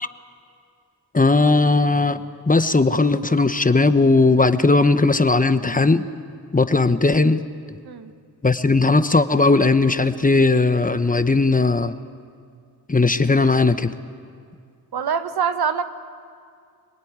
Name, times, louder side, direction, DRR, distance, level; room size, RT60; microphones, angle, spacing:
voice 1, 1.1-6.0 6.5-7.4 8.4-12.0 12.9-13.9, left 3 dB, 20° left, 11 dB, 1.0 m, -17 dB
voice 2, 14.9-15.8, right 6 dB, 80° right, 10 dB, 1.3 m, -24 dB
26.0 x 19.0 x 9.6 m, 2.2 s
cardioid pair, 60°, 38 cm